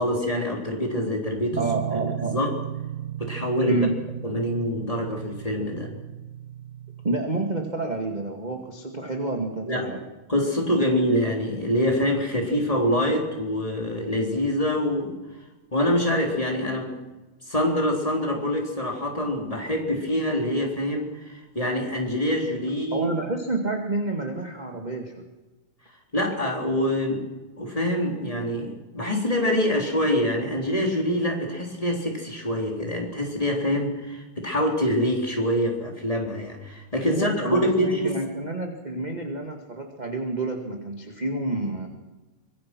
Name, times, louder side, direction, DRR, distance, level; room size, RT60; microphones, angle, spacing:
voice 1, 0.0-1.6 1.9-2.6 3.2-3.9 4.2-5.9 9.6-9.9 10.3-15.1 15.7-17.0 17.5-23.1 26.1-27.2 27.6-38.2, equal, 10° left, 1 dB, 3.6 m, -25 dB
sound 1, 1.5-7.1, right 12 dB, 80° right, 2.6 m, -35 dB
voice 2, 1.6-2.4 3.7-4.0 7.0-10.0 22.9-25.1 37.0-41.9, right 2 dB, 15° right, 3 dB, 1.5 m, -29 dB
25.0 x 22.5 x 6.2 m, 1.2 s
omnidirectional pair, 3.8 m